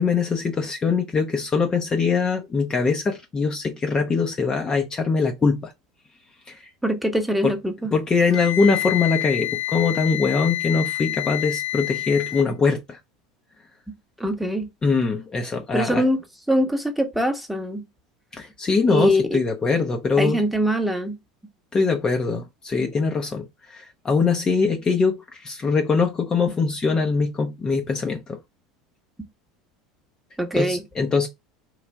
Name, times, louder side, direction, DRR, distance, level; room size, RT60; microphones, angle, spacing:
voice 1, 0.0-5.7 6.5-6.6 7.4-7.5 7.9-13.0 14.8-16.1 18.3-20.4 21.7-28.4 30.5-31.3, left 4 dB, 25° left, 0.6 m, -22 dB
voice 2, 6.8-7.9 14.2-14.7 15.7-16.2 16.5-17.8 18.9-19.2 20.2-21.2 30.4-30.8, equal, 5° right, 0.9 m, -23 dB
Wind instrument woodwind instrument, 8.3-12.5, left 16 dB, 65° left, 1.2 m, -28 dB
3.1 x 2.4 x 3.4 m
hypercardioid pair, 85°, 3 cm